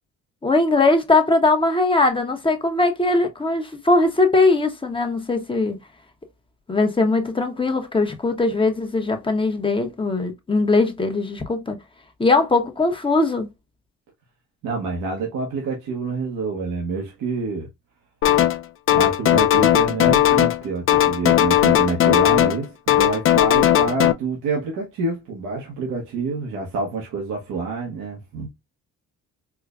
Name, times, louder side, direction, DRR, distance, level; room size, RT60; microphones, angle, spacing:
voice 1, 0.4-5.8 6.7-11.8 12.2-13.5, left 3 dB, 15° left, 0.8 m, -20 dB
voice 2, 14.6-17.7 18.9-28.5, right 3 dB, 90° right, 1.0 m, -27 dB
sound 1, 18.2-18.6 18.9-20.6 20.9-22.6 22.9-24.1, left 12 dB, 45° left, 0.4 m, -17 dB
4.6 x 2.2 x 2.4 m
cardioid pair, 90°, 30 cm